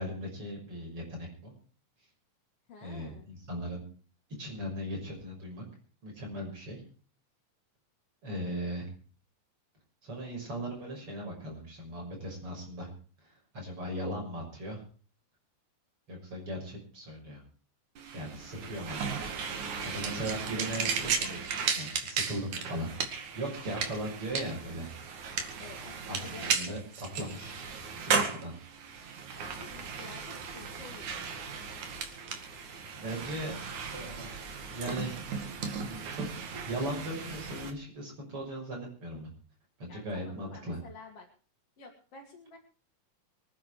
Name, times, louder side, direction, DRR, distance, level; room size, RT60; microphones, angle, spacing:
voice 1, 0.0-1.5 2.8-3.8 4.4-5.6 6.0-6.8 8.2-8.9 10.0-12.9 13.2-14.8 16.1-17.4 18.1-24.9 26.1-27.7 28.0-28.5 32.9-33.6 33.9-34.4 34.7-35.2 35.8-36.3 36.6-39.3 39.8-40.8, equal, 45° right, 1 dB, 7.2 m, -38 dB
voice 2, 2.7-3.3 18.6-18.8 25.6-26.8 27.1-27.3 29.4-31.7 39.9-41.3 41.8-42.6, left 3 dB, 55° left, -1 dB, 3.4 m, -50 dB
sound 1, 18.0-37.7, right 5 dB, 75° right, 3.6 m, -35 dB
24.5 x 10.0 x 4.9 m, 0.40 s
omnidirectional pair, 3.4 m